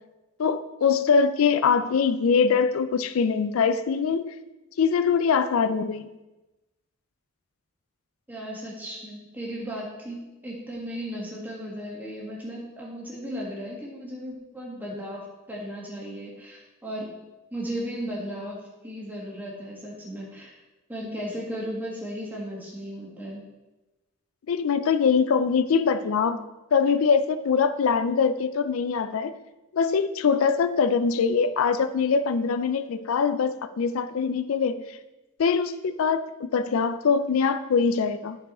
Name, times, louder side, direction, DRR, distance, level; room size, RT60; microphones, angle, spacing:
voice 1, 0.4-4.4 4.8-6.1 24.5-26.4 26.7-29.4 29.7-35.0 35.4-38.4, left 5 dB, 85° left, 13 dB, 0.4 m, -23 dB
voice 2, 8.3-17.1 17.5-20.5 20.9-23.4, equal, 10° right, -4 dB, 1.7 m, -36 dB
10.5 x 4.6 x 4.2 m, 1.1 s
head